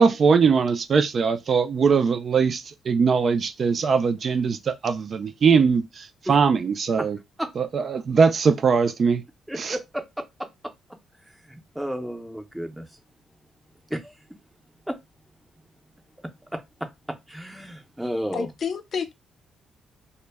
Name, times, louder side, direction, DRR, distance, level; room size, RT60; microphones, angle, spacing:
voice 1, 0.0-7.2 7.6-9.2 9.6-9.8, right 5 dB, 50° right, 0.3 m, -21 dB
voice 2, 9.5-10.0 11.5-12.9 13.9-14.1 14.9-15.0 17.1-18.5, equal, 5° right, 0.6 m, -32 dB
voice 3, 18.3-19.1, left 6 dB, 55° left, 0.4 m, -29 dB
2.1 x 2.1 x 3.3 m
cardioid pair, 90°, 0 cm